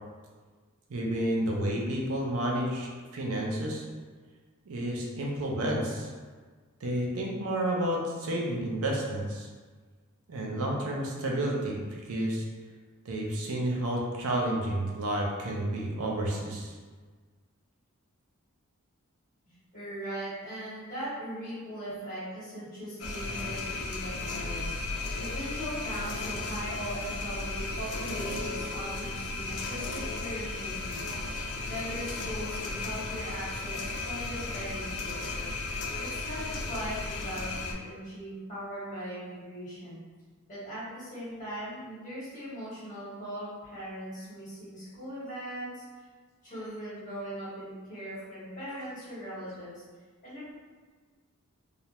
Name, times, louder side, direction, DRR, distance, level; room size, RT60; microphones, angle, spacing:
voice 1, 0.9-3.8 4.7-6.1 6.8-9.5 10.3-11.8 12.1-12.4 13.1-16.7, right 1 dB, 80° right, -2 dB, 0.5 m, -30 dB
voice 2, 19.7-24.8 25.2-31.4 31.6-35.5 36.0-40.0 40.5-46.0 46.4-49.8 50.2-50.5, equal, 35° left, -10 dB, 1.2 m, -39 dB
sound 1, 23.0-37.7, left 3 dB, 70° left, 0.4 m, -35 dB
2.3 x 2.1 x 2.8 m, 1.5 s
head